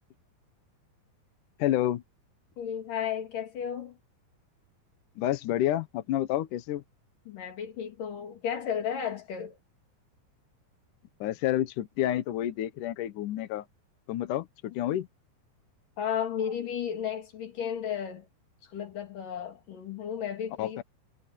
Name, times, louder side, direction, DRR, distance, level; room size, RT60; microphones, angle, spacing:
voice 1, 1.6-2.0 5.2-6.8 11.2-13.7 14.1-15.1 20.6-20.8, left 13 dB, 75° left, 1.9 m, -29 dB
voice 2, 2.6-4.0 7.3-9.6 16.0-18.3 18.6-20.8, left 8 dB, 50° left, 4.4 m, -34 dB
omnidirectional pair, 5.1 m